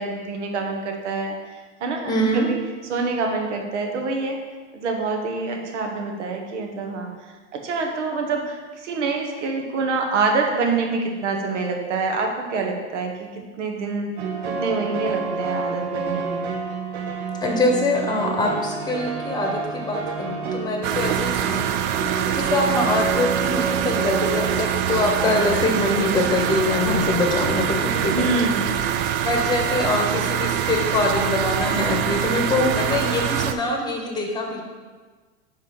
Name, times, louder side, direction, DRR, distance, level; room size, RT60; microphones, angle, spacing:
voice 1, 0.0-1.4 1.8-2.6 2.9-4.4 4.7-7.1 7.5-14.1 14.5-16.5 28.1-28.9, right 3 dB, 85° right, 2 dB, 1.3 m, -26 dB
voice 2, 2.1-2.5 17.4-21.7 22.3-28.3 29.2-34.6, left 2 dB, 10° left, 1 dB, 1.0 m, -24 dB
sound 1, 14.2-28.2, right 5 dB, 65° right, 1.0 m, -29 dB
sound 2, 20.8-33.5, right 9 dB, 40° right, 0.4 m, -24 dB
4.9 x 4.2 x 5.7 m, 1.4 s
supercardioid pair, 130°, 35 cm